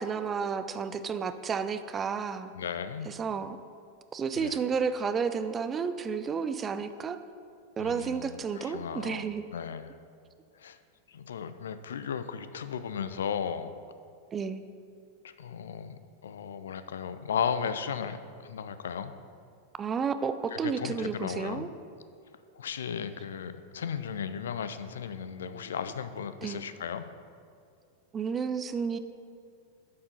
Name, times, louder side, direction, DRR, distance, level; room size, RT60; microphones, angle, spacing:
voice 1, 0.0-2.5 3.1-3.6 4.1-7.2 7.8-9.4 14.3-14.6 19.8-21.7 26.4-26.6 28.1-29.0, right 6 dB, 20° right, 11 dB, 0.4 m, -31 dB
voice 2, 2.5-3.1 4.4-4.6 7.8-9.9 10.6-10.8 11.1-13.7 15.4-19.1 20.5-21.7 22.6-27.1, left 7 dB, 65° left, 12 dB, 0.4 m, -35 dB
8.3 x 4.7 x 5.2 m, 2.3 s
figure-of-eight pair, 90°, 0 cm